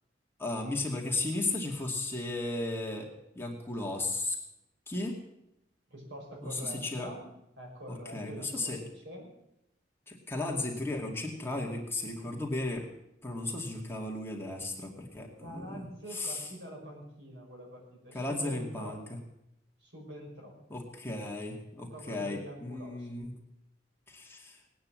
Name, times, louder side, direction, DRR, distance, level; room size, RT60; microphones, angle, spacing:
voice 1, 0.4-3.1 3.4-4.4 4.9-5.2 6.4-7.1 7.9-8.8 10.1-12.9 13.2-15.8 16.1-16.4 18.1-19.0 20.7-23.3 24.1-24.6, left 2 dB, 15° left, -1 dB, 2.3 m, -35 dB
voice 2, 5.9-7.3 7.6-9.3 15.4-19.0 19.8-20.6 21.9-23.2, equal, 70° right, 0 dB, 5.8 m, -45 dB
19.0 x 9.4 x 7.6 m, 0.84 s
head